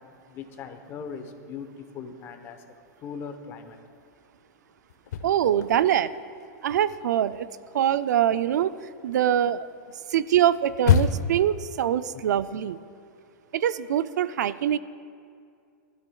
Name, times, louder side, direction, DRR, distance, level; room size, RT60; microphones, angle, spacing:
voice 1, 0.3-1.7 1.9-2.6 3.0-3.8 12.1-12.2, left 6 dB, 25° left, 7 dB, 0.9 m, -39 dB
sound 1, 4.9-6.1 6.4-11.5, left 7 dB, 80° left, 0.8 m, -28 dB
voice 2, 5.2-6.1 6.6-7.5 7.7-8.7 9.0-9.7 10.1-12.8 13.5-14.8, right 10 dB, 85° right, 14 dB, 0.4 m, -23 dB
19.0 x 12.0 x 2.3 m, 2.3 s
supercardioid pair, 155°, 9 cm